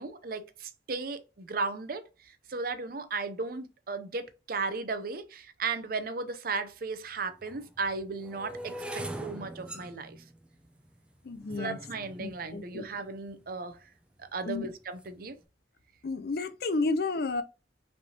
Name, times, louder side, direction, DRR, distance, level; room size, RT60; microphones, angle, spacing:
voice 1, 0.0-10.2 11.6-13.8 14.3-15.4, right 4 dB, 55° right, 0.6 m, -35 dB
sound 1, 6.5-6.6 7.4-13.5 14.2-14.6 14.8-15.2, right 1 dB, 5° right, 0.5 m, -43 dB
voice 2, 11.2-11.8 12.2-12.9 14.4-14.7 16.0-17.4, left 3 dB, 60° left, 0.5 m, -31 dB
5.4 x 3.4 x 2.8 m
head